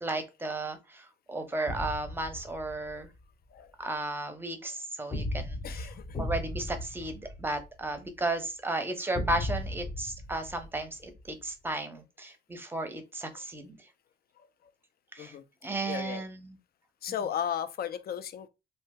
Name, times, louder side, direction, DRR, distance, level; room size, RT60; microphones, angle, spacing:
voice 1, 0.0-3.1 3.8-5.9 6.2-13.8 15.1-15.3 15.6-16.6, right 2 dB, 10° right, 0.7 m, -34 dB
sound 1, 1.7-3.0 5.1-8.1 9.1-11.3, left 1 dB, 30° left, 0.8 m, -36 dB
voice 2, 5.6-6.2 8.8-8.9 13.3-13.4 14.4-14.7 15.2-15.4 15.9-16.2 17.0-18.5, left 9 dB, 50° left, 0.4 m, -36 dB
2.7 x 2.0 x 3.5 m
cardioid pair, 90°, 20 cm